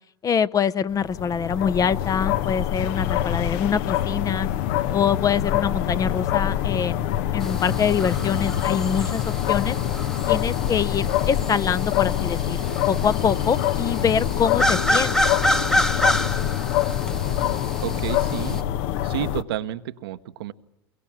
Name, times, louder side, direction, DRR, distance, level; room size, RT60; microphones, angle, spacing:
voice 1, 0.2-4.5 4.9-9.8 10.3-12.6 12.9-15.2, left 7 dB, 25° left, 16 dB, 0.7 m, -24 dB
sound 1, 0.9-19.4, left 12 dB, 55° left, 1.0 m, -25 dB
sound 2, 7.4-18.6, equal, 5° left, 1.1 m, -28 dB
voice 2, 17.8-18.6 19.0-20.5, right 13 dB, 70° right, 10 dB, 1.1 m, -30 dB
23.5 x 22.5 x 7.3 m, 0.91 s
hypercardioid pair, 90°, 13 cm